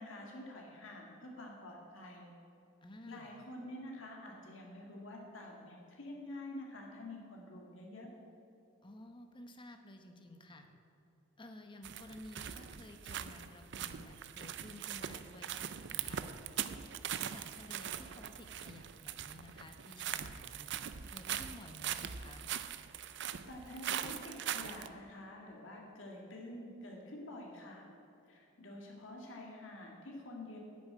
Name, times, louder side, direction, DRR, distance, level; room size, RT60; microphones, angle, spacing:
voice 1, 0.0-2.3 3.1-8.1 23.1-27.9 28.3-30.6, left 1 dB, 65° left, -1 dB, 1.9 m, -48 dB
voice 2, 2.8-3.3 8.8-10.7 11.4-16.2 17.3-20.7 21.1-22.5, left 1 dB, 25° left, 5 dB, 1.0 m, -53 dB
sound 1, 11.8-24.9, right 9 dB, 55° right, 0.5 m, -41 dB
9.9 x 7.1 x 8.7 m, 2.9 s
head